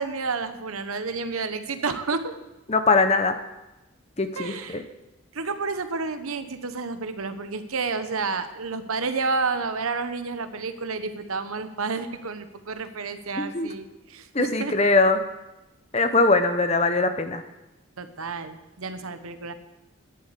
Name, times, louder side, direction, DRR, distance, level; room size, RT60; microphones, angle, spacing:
voice 1, 0.0-2.3 4.4-4.8 5.3-14.7 18.0-19.5, right 4 dB, 90° right, 10 dB, 1.0 m, -30 dB
voice 2, 2.7-3.4 4.2-4.8 13.4-13.7 14.3-15.2 15.9-17.4, left 3 dB, 30° left, 8 dB, 0.8 m, -21 dB
10.5 x 8.0 x 8.1 m, 1.0 s
head